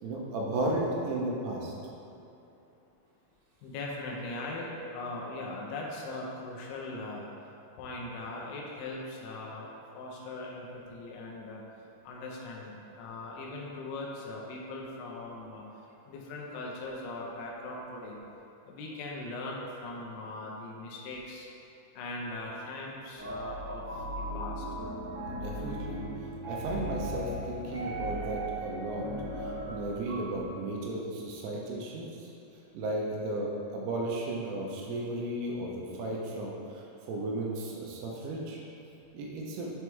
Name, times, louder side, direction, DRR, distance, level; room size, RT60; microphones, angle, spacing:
voice 1, 0.0-1.7 25.3-26.0 26.4-29.1 29.4-32.1 32.7-38.6 39.1-39.7, right 1 dB, 80° right, -2 dB, 2.8 m, -34 dB
voice 2, 3.6-7.2 7.8-9.7 9.9-11.6 12.0-15.6 16.1-18.2 18.7-21.5 22.0-24.7, left 2 dB, 80° left, -2 dB, 2.8 m, -40 dB
sound 1, 23.2-30.4, right 1 dB, 60° right, 1.9 m, -37 dB
7.1 x 4.6 x 3.4 m, 2.9 s
omnidirectional pair, 4.9 m